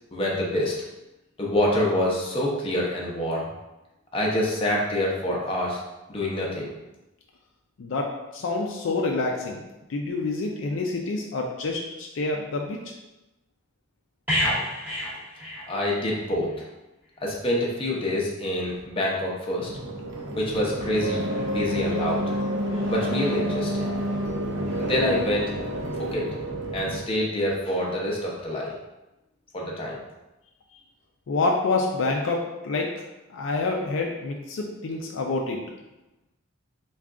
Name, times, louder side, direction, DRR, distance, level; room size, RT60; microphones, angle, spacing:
voice 1, 0.1-0.7 1.4-3.4 4.1-5.8 6.1-6.7 15.7-16.5 17.2-19.7 20.4-22.2 22.9-23.9 24.8-25.5 26.1-26.3 26.7-28.7 29.5-30.0, left 1 dB, 25° left, -3 dB, 0.7 m, -26 dB
voice 2, 7.8-9.6 9.9-12.9 31.3-32.9 33.3-35.6, left 3 dB, 65° left, 0 dB, 0.4 m, -27 dB
sound 1, 14.3-16.2 16.5-16.7, left 1 dB, 10° right, 0.8 m, -28 dB
sound 2, 19.6-27.0, equal, 60° right, 0.6 m, -29 dB
3.5 x 2.3 x 3.6 m, 1.0 s
head